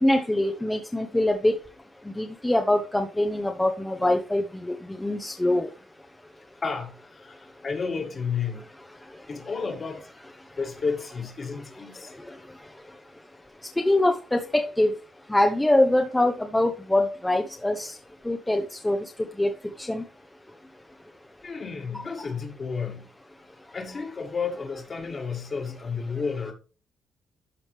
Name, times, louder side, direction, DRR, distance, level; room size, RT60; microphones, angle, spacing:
voice 1, 0.0-1.6 2.2-5.7 13.8-14.9 15.3-17.9 18.3-19.0 19.4-19.5 19.8-20.0, left 1 dB, 10° left, 0.8 m, -23 dB
voice 2, 6.6-8.6 9.3-10.1 10.6-12.1 21.4-23.1 23.7-26.5, left 5 dB, 40° left, 1.9 m, -32 dB
12.0 x 4.9 x 3.3 m
cardioid pair, 90°, 0 cm